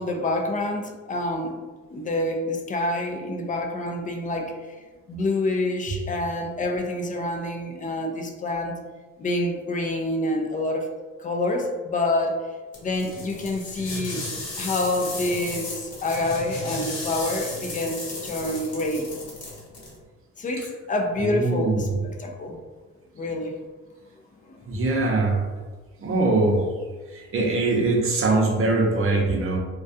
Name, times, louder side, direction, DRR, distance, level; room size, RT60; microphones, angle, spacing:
voice 1, 0.0-8.8 9.2-10.9 11.2-12.5 12.8-14.3 14.6-19.1 20.4-21.9 22.2-22.6 23.1-23.6 24.5-24.8, left 2 dB, 25° left, 3 dB, 0.4 m, -27 dB
sound 1, 12.7-19.9, left 2 dB, 50° left, 0.9 m, -35 dB
voice 2, 21.2-21.8 24.7-25.4 26.0-26.6 27.1-29.6, right 3 dB, 45° right, 0 dB, 0.7 m, -22 dB
2.3 x 2.2 x 2.6 m, 1.3 s
cardioid pair, 90°, 30 cm